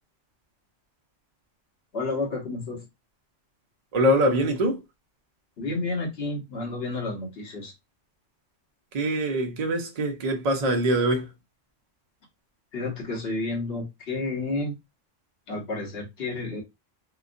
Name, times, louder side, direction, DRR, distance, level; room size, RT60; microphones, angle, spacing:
voice 1, 1.9-2.8 5.6-7.7 12.7-14.8 15.5-16.6, left 3 dB, 55° left, 1.2 m, -31 dB
voice 2, 3.9-4.8 8.9-11.3, right 1 dB, 45° right, 0.6 m, -23 dB
2.9 x 2.4 x 2.4 m
omnidirectional pair, 1.3 m